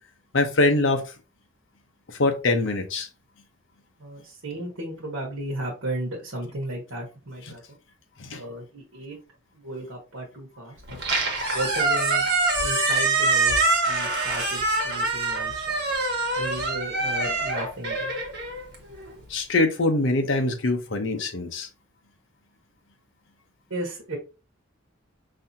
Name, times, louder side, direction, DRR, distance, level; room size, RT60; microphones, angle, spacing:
voice 1, 0.3-1.0 2.1-3.1 7.5-7.6 8.2-8.4 19.3-21.7, left 2 dB, 65° left, 0.9 m, -23 dB
voice 2, 4.0-7.6 8.3-9.2 9.5-10.8 11.5-12.3 12.6-15.7 16.3-18.2 23.7-24.2, right 1 dB, 85° right, 1.2 m, -34 dB
Squeak, 10.9-19.1, right 3 dB, 55° right, 1.3 m, -25 dB
5.4 x 2.8 x 2.7 m
head